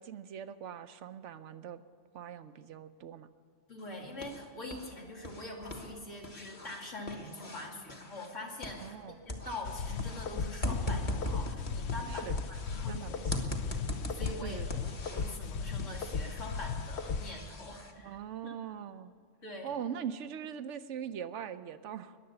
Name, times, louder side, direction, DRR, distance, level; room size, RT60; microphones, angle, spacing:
voice 1, 0.0-1.8 2.1-3.3 8.8-9.2 12.1-12.4 12.9-13.5 14.4-14.8 18.0-19.1 19.6-22.2, right 8 dB, 75° right, 11 dB, 1.0 m, -41 dB
voice 2, 3.7-13.2 13.6-13.8 14.2-14.6 15.1-18.2 18.4-18.5 19.4-19.7, left 2 dB, 85° left, -1 dB, 2.7 m, -44 dB
sound 1, 3.8-4.9 5.2-9.0 9.3-12.9 13.3-15.4 15.8-17.9, left 1 dB, 30° left, 1.4 m, -40 dB
sound 2, 9.6-17.3, left 5 dB, 65° left, 1.0 m, -37 dB
21.0 x 7.7 x 6.9 m, 2.3 s
omnidirectional pair, 1.2 m